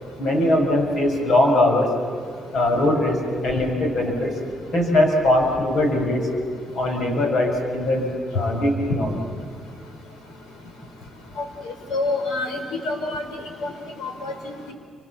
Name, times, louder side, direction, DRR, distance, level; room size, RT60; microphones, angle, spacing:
voice 1, 0.2-1.9 2.5-4.4 4.7-6.3 6.7-8.1 8.3-9.2, left 1 dB, 65° left, 2 dB, 6.8 m, -21 dB
voice 2, 11.9-13.2 13.6-13.7 14.0-14.5, left 2 dB, 85° left, 5 dB, 4.9 m, -27 dB
30.0 x 26.0 x 7.4 m, 2.3 s
cardioid pair, 90°, 0 cm